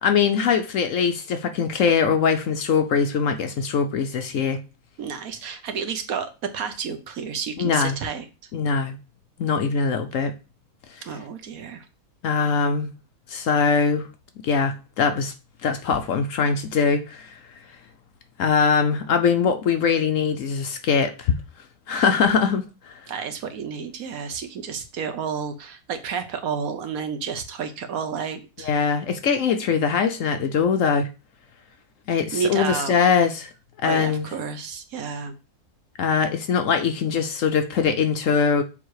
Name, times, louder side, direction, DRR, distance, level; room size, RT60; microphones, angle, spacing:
voice 1, 0.0-4.6 7.6-7.9 8.5-9.0 9.4-10.3 12.2-12.9 13.3-14.1 14.4-15.3 15.6-17.4 18.4-21.3 21.9-22.6 28.6-31.1 32.1-33.5 33.8-34.3 36.0-38.6, left 6 dB, 65° left, 0.9 m, -22 dB
voice 2, 5.0-8.5 11.0-11.9 21.9-22.1 23.1-28.7 32.3-33.0 33.8-35.3, right 6 dB, 65° right, 1.2 m, -31 dB
7.3 x 3.0 x 4.7 m
omnidirectional pair, 1.7 m